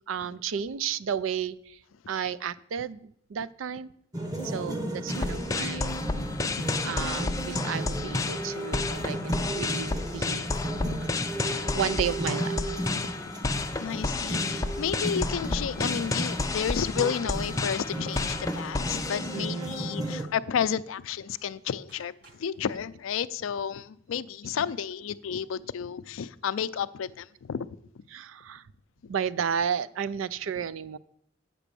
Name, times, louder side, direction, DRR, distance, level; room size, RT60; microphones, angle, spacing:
voice 1, 0.0-1.8 2.1-3.9 4.4-5.9 6.8-10.5 11.4-12.6 19.3-19.8 28.1-28.6 29.1-31.0, right 8 dB, 80° right, 0.4 m, -33 dB
sound 1, 4.1-20.2, right 1 dB, 20° right, 1.1 m, -34 dB
sound 2, 5.1-19.8, left 3 dB, 15° left, 0.4 m, -31 dB
voice 2, 6.1-7.1 9.0-9.1 10.1-10.2 10.8-11.1 11.5-11.6 12.8-13.1 13.5-27.7 28.0-28.1, left 7 dB, 85° left, 0.4 m, -32 dB
sound 3, 9.1-11.8 12.4-13.4 13.8-13.9 14.5-19.1 21.3-21.5 21.9-22.8, right 2 dB, 55° right, 4.8 m, -56 dB
8.1 x 6.0 x 6.8 m
head